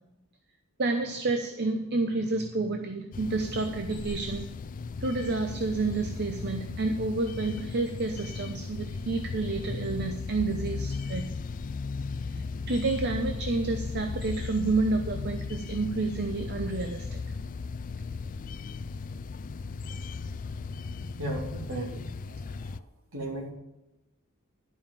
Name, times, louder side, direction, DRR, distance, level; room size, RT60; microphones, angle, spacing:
voice 1, 0.8-4.5 5.0-11.3 12.3-17.2, right 3 dB, 50° right, 6 dB, 0.8 m, -30 dB
sound 1, 3.1-22.8, left 4 dB, 40° left, 0.3 m, -36 dB
voice 2, 21.2-22.8 23.1-23.5, right 1 dB, 65° right, -1 dB, 3.2 m, -36 dB
11.5 x 5.6 x 7.2 m, 0.95 s
head